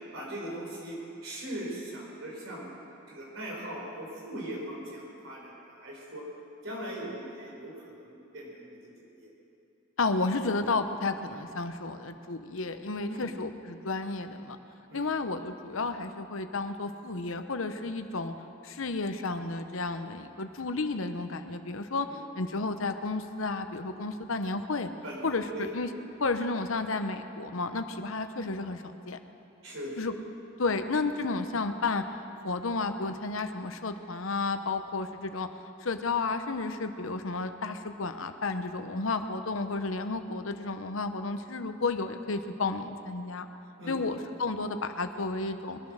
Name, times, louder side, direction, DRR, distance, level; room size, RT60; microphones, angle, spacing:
voice 1, 0.1-2.7 3.1-6.2 6.6-8.9 9.2-9.3 13.0-13.3 14.9-15.1 22.1-22.2 25.0-25.7 29.6-30.0 43.8-44.2, right 1 dB, 70° right, -3 dB, 4.6 m, -40 dB
voice 2, 10.0-14.6 14.9-18.3 18.6-22.1 22.3-24.9 25.2-25.9 26.2-29.2 30.0-30.2 30.6-32.0 32.4-35.5 35.8-43.5 43.9-45.8, left 3 dB, 70° left, 8 dB, 0.9 m, -32 dB
21.0 x 10.5 x 6.4 m, 2.8 s
head